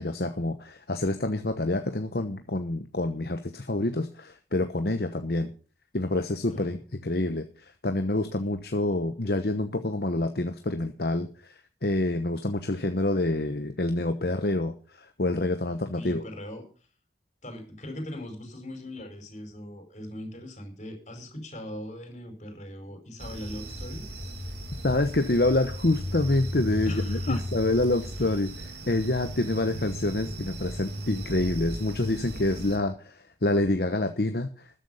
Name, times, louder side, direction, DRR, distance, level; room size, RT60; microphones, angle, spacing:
voice 1, 0.0-5.5 5.9-16.2 24.8-34.8, left 2 dB, 55° left, 7 dB, 1.0 m, -27 dB
voice 2, 15.9-16.7 17.4-24.1 26.8-27.5, left 1 dB, 40° left, 5 dB, 4.8 m, -40 dB
sound 1, 23.2-32.8, equal, 65° right, 3.1 m, -36 dB
13.5 x 10.5 x 5.7 m, 0.40 s
head